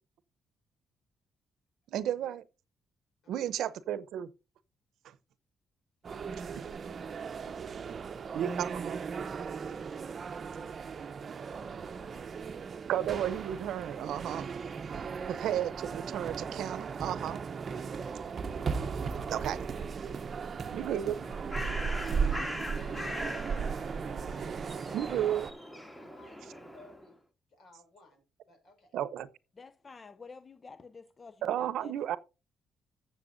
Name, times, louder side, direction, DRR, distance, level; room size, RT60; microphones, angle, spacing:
voice 1, 1.9-2.4 3.3-4.3 5.0-5.1 8.3-9.0 12.9-14.4 15.3-17.4 19.3-19.6 20.7-21.1 24.9-25.5 28.9-29.3 31.4-32.2, right 10 dB, 80° right, 0.8 m, -33 dB
voice 2, 3.2-3.7 6.0-7.7 10.3-12.9 19.1-19.9 20.4-25.5 25.9-27.2 27.5-29.0, left 2 dB, 65° left, 5.5 m, -60 dB
sound 1, 6.0-25.5, right 5 dB, 45° right, 0.7 m, -37 dB
Bird, 21.0-27.0, left 1 dB, 15° left, 2.4 m, -41 dB
voice 3, 29.6-31.9, left 4 dB, 30° left, 0.6 m, -50 dB
14.5 x 7.0 x 2.7 m
cardioid pair, 90°, 0 cm